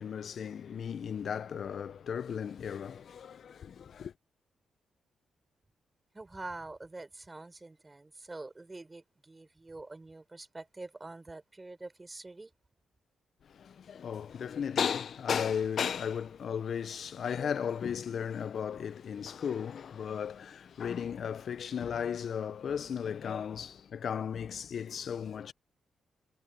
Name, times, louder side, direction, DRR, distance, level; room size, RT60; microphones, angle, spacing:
voice 1, 0.0-4.1 13.5-25.5, left 7 dB, 60° left, 1.2 m, -35 dB
voice 2, 6.1-12.5, right 2 dB, 25° right, 6.4 m, -46 dB
hypercardioid pair, 45°, 0 cm